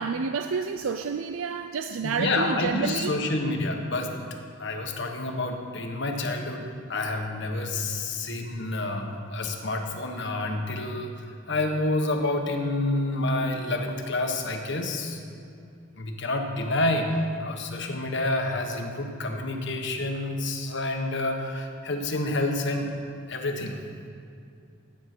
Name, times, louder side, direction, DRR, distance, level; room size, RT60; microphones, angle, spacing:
voice 1, 0.0-3.2, right 5 dB, 85° right, 8 dB, 0.5 m, -29 dB
voice 2, 2.0-4.1 4.6-15.2 16.0-22.9 23.3-23.8, left 2 dB, 60° left, 3 dB, 1.4 m, -28 dB
13.0 x 9.1 x 6.1 m, 2.5 s
head